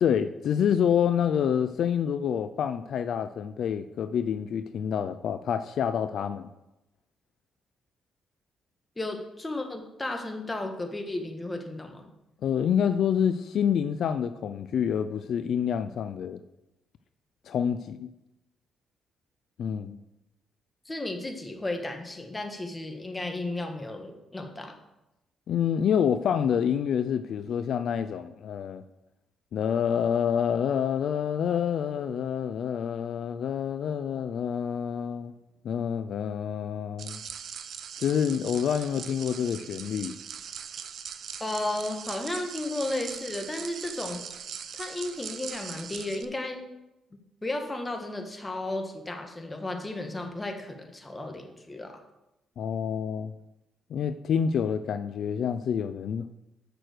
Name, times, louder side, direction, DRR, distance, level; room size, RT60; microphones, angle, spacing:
voice 1, 0.0-6.5 12.4-16.4 17.5-18.1 19.6-20.0 25.5-28.8 29.5-35.3 35.6-37.2 38.0-40.2 52.6-53.3 53.9-56.3, left 8 dB, 65° left, 10 dB, 0.4 m, -27 dB
voice 2, 9.0-12.0 20.8-24.8 41.4-44.2 44.7-46.7 47.4-52.0, left 2 dB, 15° left, 4 dB, 1.5 m, -34 dB
sound 1, 37.0-46.2, right 7 dB, 65° right, 0.6 m, -40 dB
6.8 x 5.9 x 6.5 m, 0.93 s
cardioid pair, 90°, 0 cm